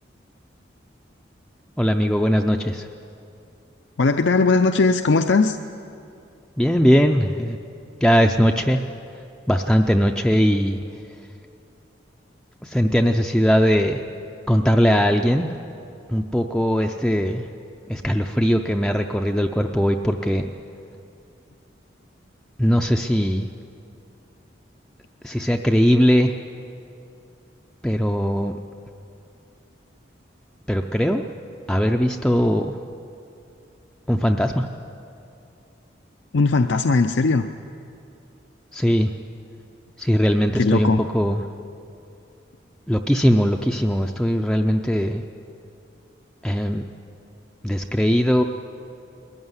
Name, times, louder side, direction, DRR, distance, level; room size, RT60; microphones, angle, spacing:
voice 1, 1.8-2.9 6.6-7.6 8.0-8.8 9.5-10.8 12.6-14.0 14.5-15.5 16.1-17.4 17.9-20.5 22.6-23.5 25.2-26.3 27.8-28.5 30.7-31.2 31.7-32.8 34.1-34.7 38.7-39.1 40.0-41.4 42.9-45.2 46.4-46.8 47.6-48.4, equal, 5° left, 2 dB, 0.5 m, -20 dB
voice 2, 4.0-5.6 36.3-37.5 40.5-41.0, left 3 dB, 75° left, 7 dB, 0.6 m, -18 dB
21.0 x 14.5 x 9.6 m, 2.6 s
head